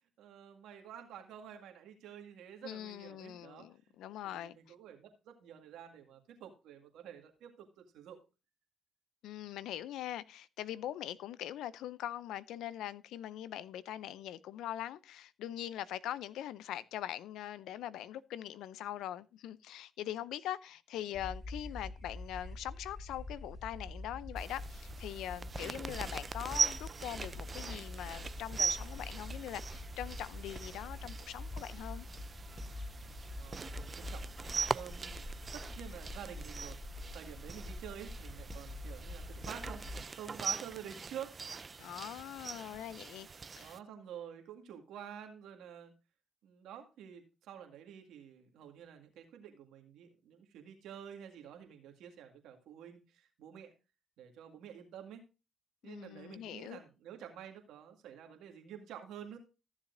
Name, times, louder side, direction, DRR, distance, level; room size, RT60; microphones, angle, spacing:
voice 1, 0.2-3.9 4.2-8.2 33.4-34.3 34.6-41.4 43.6-45.9 46.4-53.7 54.2-55.2 55.8-59.4, right 9 dB, 80° right, 1.9 m, -49 dB
voice 2, 2.6-4.6 9.2-32.1 41.8-43.3 43.6-43.7 55.8-56.8, left 12 dB, 80° left, 0.5 m, -42 dB
sound 1, 21.1-40.0, left 2 dB, 20° left, 5.7 m, -45 dB
sound 2, 24.4-43.8, right 5 dB, 40° right, 0.4 m, -41 dB
14.5 x 7.3 x 2.6 m
supercardioid pair, 60°, 0 cm